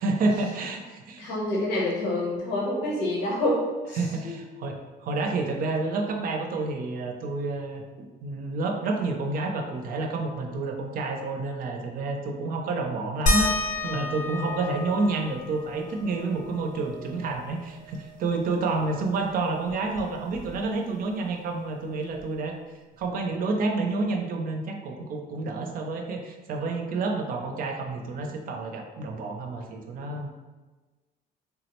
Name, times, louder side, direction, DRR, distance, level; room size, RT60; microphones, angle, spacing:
voice 1, 0.0-1.3 4.0-22.5 23.0-30.3, right 3 dB, 60° right, 4 dB, 0.5 m, -29 dB
voice 2, 1.2-4.0 4.2-4.4, left 1 dB, 80° left, -3 dB, 0.9 m, -27 dB
sound 1, 13.3-18.4 18.7-18.8 19.2-20.9 22.2-22.3 23.0-23.1, left 1 dB, 50° left, 0.5 m, -32 dB
3.5 x 2.0 x 2.9 m, 1.3 s
cardioid pair, 110°, 17 cm